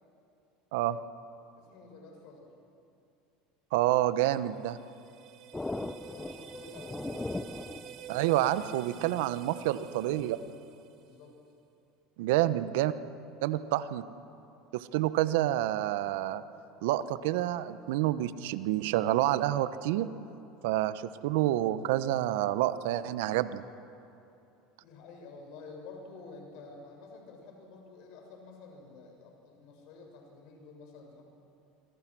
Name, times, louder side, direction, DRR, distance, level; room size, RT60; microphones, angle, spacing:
voice 1, 1.5-2.5 5.9-7.5 11.0-11.3 13.5-13.6 24.8-31.3, left 4 dB, 65° left, 2 dB, 7.2 m, -50 dB
voice 2, 3.7-4.8 8.1-10.4 12.2-12.9 13.4-14.0 14.7-16.4 16.8-20.1 20.6-23.6, right 14 dB, 75° right, 13 dB, 1.0 m, -28 dB
sound 1, 4.3-11.4, right 9 dB, 55° right, 2.0 m, -49 dB
sound 2, 5.5-10.5, left 2 dB, 10° left, 0.9 m, -40 dB
27.0 x 24.5 x 6.2 m, 2.7 s
hypercardioid pair, 90°, 0 cm